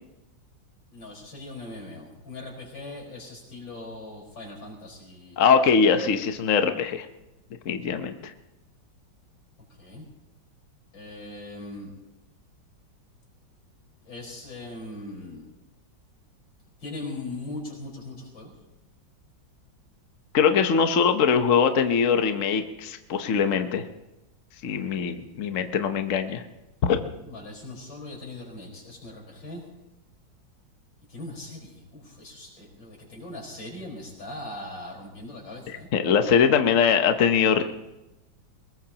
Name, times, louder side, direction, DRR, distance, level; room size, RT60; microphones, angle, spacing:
voice 1, 0.9-5.4 9.8-10.1 10.9-11.9 14.1-15.5 16.8-18.5 27.2-29.6 31.1-35.9, left 2 dB, 75° left, -1 dB, 5.5 m, -40 dB
voice 2, 5.4-7.1 7.6-8.3 20.3-23.8 24.6-26.4 26.8-27.0 35.7-37.6, left 6 dB, 50° left, 7 dB, 1.1 m, -22 dB
23.0 x 20.5 x 2.9 m, 0.97 s
omnidirectional pair, 2.1 m